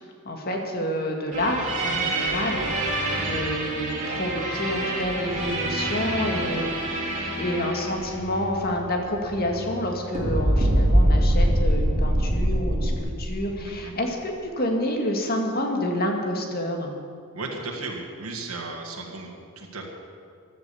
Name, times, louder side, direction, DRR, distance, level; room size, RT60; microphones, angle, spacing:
voice 1, 0.3-3.0 3.2-6.7 7.0-7.1 7.4-16.9, left 1 dB, 45° left, 2 dB, 2.0 m, -28 dB
sound 1, 1.3-9.9 10.1-13.0, right 1 dB, 35° right, 3.2 m, -25 dB
voice 2, 13.6-13.9 17.3-19.9, right 3 dB, 80° right, -1 dB, 2.0 m, -35 dB
15.0 x 11.5 x 7.0 m, 2.3 s
head